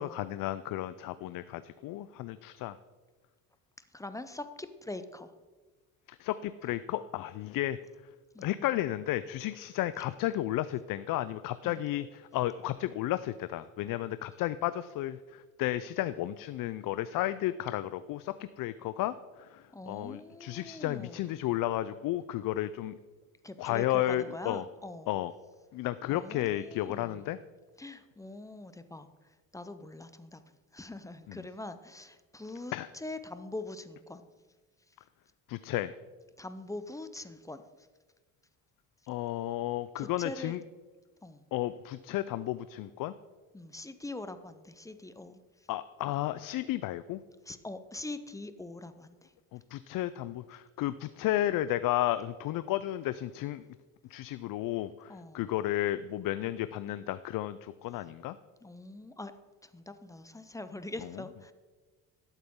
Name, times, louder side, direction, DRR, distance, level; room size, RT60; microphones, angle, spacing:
voice 1, 0.0-2.8 6.1-7.8 8.4-23.0 23.6-24.7 25.1-25.3 25.7-27.4 31.3-31.4 32.7-32.9 35.5-36.0 39.1-40.6 41.5-43.1 45.7-47.2 49.5-53.6 54.1-58.4 61.0-61.1, left 14 dB, 60° left, 14 dB, 0.5 m, -33 dB
voice 2, 3.9-5.3 8.3-8.5 11.6-11.8 19.7-21.2 23.4-25.1 26.1-27.2 27.8-29.1 29.5-30.4 30.7-34.2 36.4-37.6 40.0-40.5 41.2-41.4 43.5-45.4 47.5-49.3 55.1-55.4 58.6-59.3 59.6-61.5, left 2 dB, 10° left, 11 dB, 0.6 m, -43 dB
12.0 x 8.1 x 3.7 m, 1.3 s
cardioid pair, 100°, 38 cm